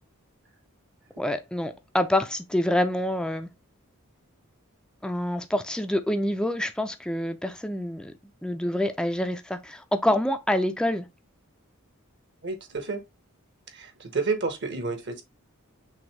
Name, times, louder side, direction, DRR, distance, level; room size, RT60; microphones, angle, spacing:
voice 1, 1.2-3.5 5.0-8.1 8.4-11.0, left 1 dB, 5° left, 0.4 m, -26 dB
voice 2, 12.4-13.0 13.7-15.2, right 4 dB, 55° right, 1.0 m, -30 dB
6.2 x 2.6 x 3.2 m
head